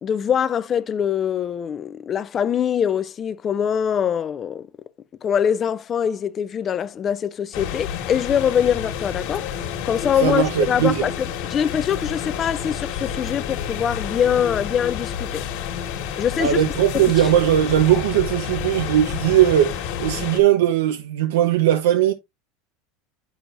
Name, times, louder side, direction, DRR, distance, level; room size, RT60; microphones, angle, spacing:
voice 1, 0.0-4.7 5.2-9.5 9.8-15.4 16.2-16.6 16.9-17.3, left 8 dB, 25° left, 0.4 m, -23 dB
sound 1, 7.5-20.4, left 8 dB, 60° left, 1.6 m, -30 dB
voice 2, 10.2-11.1 16.4-22.1, right 12 dB, 85° right, 0.8 m, -19 dB
7.8 x 6.1 x 2.6 m
supercardioid pair, 150°, 0 cm